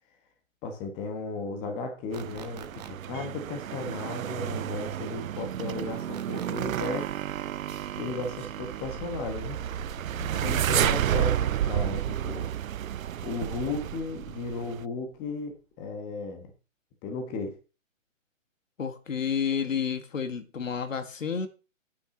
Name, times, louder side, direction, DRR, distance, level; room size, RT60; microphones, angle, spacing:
voice 1, 0.6-7.1 8.0-9.6 10.3-12.5 13.2-16.5 17.0-17.5, left 3 dB, 15° left, 1.4 m, -35 dB
sound 1, 2.1-2.9 6.1-6.9, right 8 dB, 30° right, 1.0 m, -46 dB
sound 2, 2.1-14.8, right 11 dB, 85° right, 0.5 m, -31 dB
sound 3, 9.2-13.4 13.7-15.4 15.7-15.9, left 1 dB, 5° right, 2.9 m, -49 dB
voice 2, 10.4-10.9 18.8-21.5, left 7 dB, 75° left, 1.9 m, -31 dB
9.5 x 5.8 x 7.3 m
hypercardioid pair, 160°, 40 cm